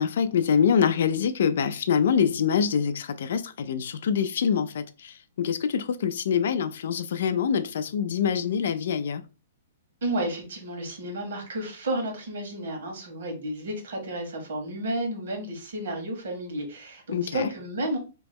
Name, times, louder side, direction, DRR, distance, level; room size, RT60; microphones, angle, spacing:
voice 1, 0.0-9.2 17.1-17.5, left 7 dB, 65° left, 0.4 m, -25 dB
voice 2, 10.0-18.0, right 1 dB, 65° right, 1.5 m, -32 dB
3.1 x 3.0 x 3.5 m
hypercardioid pair, 165°, 0 cm